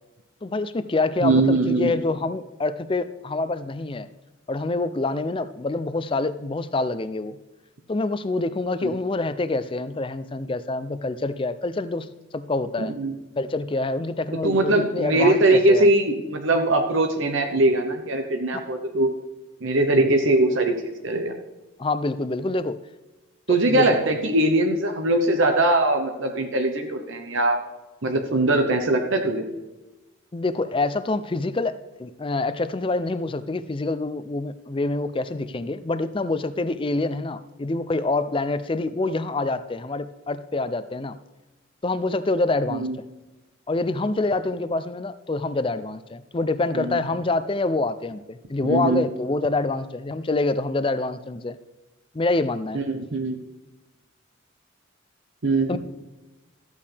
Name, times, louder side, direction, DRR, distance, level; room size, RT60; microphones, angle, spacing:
voice 1, 0.4-4.1 4.5-7.4 7.9-12.1 12.3-12.9 13.4-15.9 18.5-18.6 21.8-22.8 23.5-24.0 30.3-41.2 41.8-43.1 43.7-51.6 52.1-52.8 55.7-55.8, left 2 dB, 25° left, 13 dB, 0.4 m, -26 dB
voice 2, 1.2-2.0 8.8-9.0 12.8-13.1 14.4-19.1 19.6-21.4 23.5-27.6 28.0-29.4 42.7-43.0 46.7-47.0 48.6-49.0 52.7-53.4 55.4-55.8, right 2 dB, 65° right, 4 dB, 0.9 m, -21 dB
13.5 x 8.4 x 3.4 m, 1.1 s
head